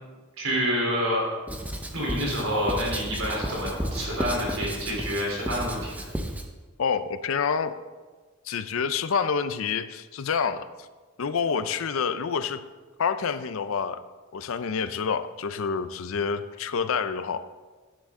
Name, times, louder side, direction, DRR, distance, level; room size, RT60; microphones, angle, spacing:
voice 1, 0.4-1.2 1.9-6.0, equal, 75° right, -3 dB, 3.3 m, -28 dB
Writing, 1.5-6.5, equal, 5° right, 0.6 m, -33 dB
sound 1, 3.3-5.0, equal, 20° right, 2.2 m, -41 dB
voice 2, 6.8-7.7 8.5-10.9 11.2-12.6 13.0-14.0 14.3-17.4, left 6 dB, 70° left, 12 dB, 0.5 m, -28 dB
10.5 x 9.1 x 3.6 m, 1.3 s
head